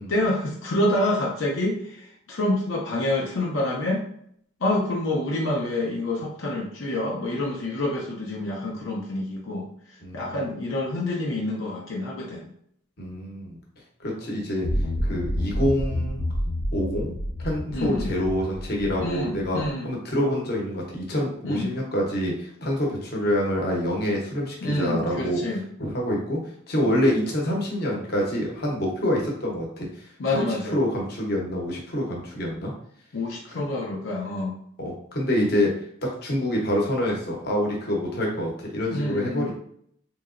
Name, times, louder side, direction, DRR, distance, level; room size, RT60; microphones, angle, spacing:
voice 1, 0.1-4.0 4.6-12.4 17.7-18.1 19.0-19.9 21.4-21.7 24.6-25.6 30.2-30.7 33.1-34.6 38.9-39.5, left 1 dB, 75° left, -3 dB, 0.6 m, -27 dB
voice 2, 13.0-13.6 14.0-14.7 15.1-16.2 16.7-19.6 19.8-25.4 25.8-26.4 26.7-29.9 30.3-32.7 34.8-35.7 36.0-39.5, equal, 50° left, -2 dB, 0.8 m, -26 dB
sound 1, 14.6-19.7, left 1 dB, 35° left, 0.3 m, -29 dB
3.0 x 2.8 x 2.5 m, 0.67 s
head